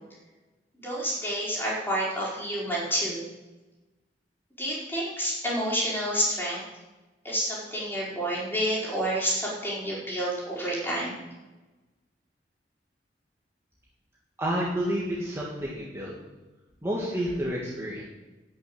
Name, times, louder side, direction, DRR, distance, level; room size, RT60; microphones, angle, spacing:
voice 1, 0.8-3.2 4.6-6.6 7.2-11.2, equal, 15° left, -5 dB, 4.7 m, -29 dB
voice 2, 14.4-16.1 16.8-18.0, equal, 15° right, -5 dB, 2.3 m, -30 dB
12.5 x 6.5 x 8.8 m, 1.1 s
head